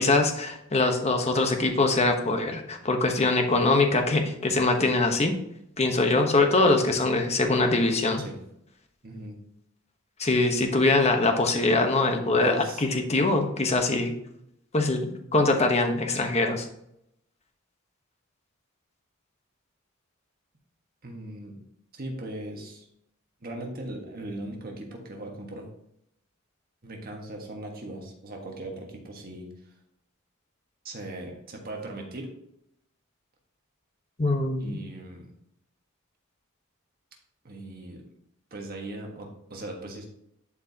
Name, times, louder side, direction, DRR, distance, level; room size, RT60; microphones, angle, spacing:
voice 1, 0.0-5.3 5.8-8.2 10.2-14.1 14.7-16.7 34.2-34.8, left 2 dB, 30° left, 4 dB, 1.0 m, -23 dB
voice 2, 9.0-9.4 12.1-12.8 21.0-21.6 21.9-22.9 23.4-25.7 26.8-29.7 30.8-32.3 34.6-35.3 37.4-38.0 38.5-40.1, right 1 dB, 45° right, 1 dB, 1.4 m, -39 dB
11.5 x 4.7 x 2.8 m, 0.76 s
head